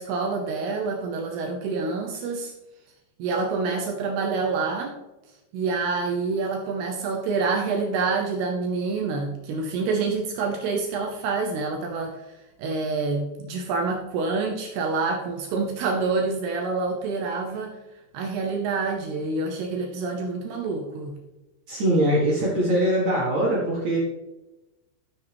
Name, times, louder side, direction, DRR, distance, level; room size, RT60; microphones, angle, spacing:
voice 1, 0.0-2.5 3.2-4.9 5.5-12.1 12.6-17.8 18.1-21.2, right 4 dB, 85° right, 1 dB, 2.3 m, -27 dB
voice 2, 21.7-24.0, right 1 dB, 60° right, -6 dB, 2.0 m, -22 dB
14.5 x 6.5 x 3.5 m, 1.0 s
omnidirectional pair, 5.8 m